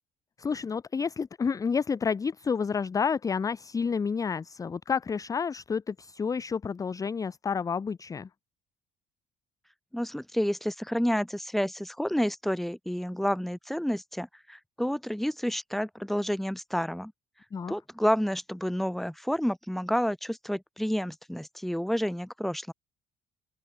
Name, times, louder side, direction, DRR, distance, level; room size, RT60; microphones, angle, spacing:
voice 1, 0.4-8.3 17.5-17.7, left 6 dB, 20° left, 0.4 m, -30 dB
voice 2, 9.9-17.1 17.7-22.7, equal, ahead, 1.2 m, -30 dB
open air
cardioid pair, 110°, 17 cm